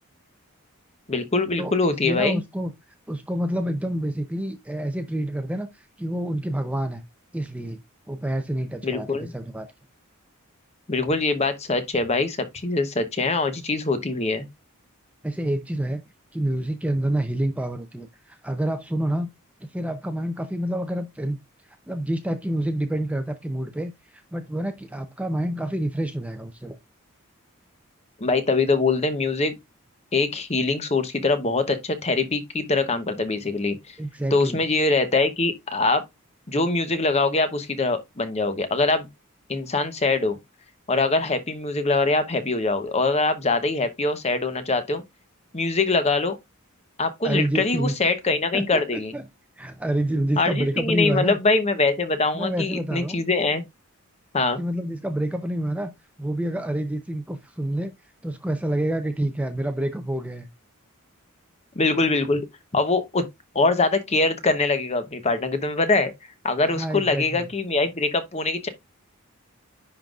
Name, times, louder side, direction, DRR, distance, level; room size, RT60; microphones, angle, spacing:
voice 1, 1.1-2.4 8.8-9.3 10.9-14.5 28.2-29.5 30.1-33.9 34.3-36.0 36.5-39.1 39.5-40.4 40.9-45.0 45.5-46.4 47.0-49.1 50.4-53.6 54.3-54.6 61.7-62.5 62.7-63.3 63.5-66.1 66.4-68.7, left 3 dB, 30° left, 0.9 m, -23 dB
voice 2, 2.0-2.7 3.1-5.7 6.0-7.0 7.3-7.8 8.1-9.7 15.2-16.0 16.3-19.3 19.6-21.4 21.9-23.9 24.3-26.8 34.0-34.6 47.2-47.9 48.5-48.6 48.9-49.2 49.6-51.4 52.3-53.2 54.6-55.9 56.2-57.9 58.2-60.5 66.7-67.5, right 1 dB, 5° right, 0.6 m, -27 dB
10.0 x 3.8 x 2.4 m
head